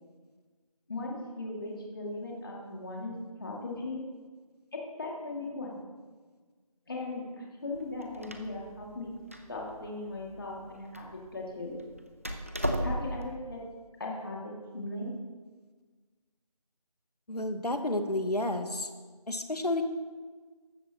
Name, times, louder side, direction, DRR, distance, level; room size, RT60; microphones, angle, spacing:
voice 1, 0.9-3.1 3.4-4.1 4.7-5.8 6.9-9.1 9.5-11.8 12.8-13.6 14.0-15.1, left 2 dB, 35° left, -2 dB, 2.3 m, -38 dB
Door, 7.7-13.3, equal, 20° right, 0.5 m, -37 dB
voice 2, 17.3-18.9 19.3-19.8, left 1 dB, 85° left, 7 dB, 1.5 m, -31 dB
15.0 x 12.5 x 3.0 m, 1.4 s
figure-of-eight pair, 170°, 20 cm